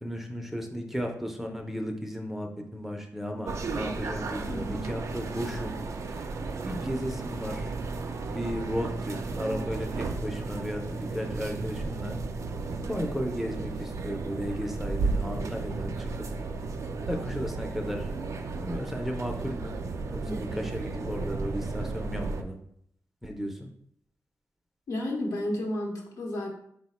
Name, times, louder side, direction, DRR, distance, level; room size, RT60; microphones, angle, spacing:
voice 1, 0.0-5.8 6.0-6.3 6.7-7.7 8.3-12.2 12.9-16.1 17.1-18.1 18.6-19.7 20.1-22.6 23.2-23.7, equal, 5° right, 3 dB, 0.5 m, -34 dB
sound 1, 3.5-22.4, right 3 dB, 60° right, 0.4 m, -34 dB
voice 2, 4.5-4.9 20.2-20.6 24.9-26.5, left 1 dB, 75° left, 0 dB, 0.9 m, -32 dB
4.0 x 2.1 x 4.1 m, 0.68 s
wide cardioid pair, 95°, 6 cm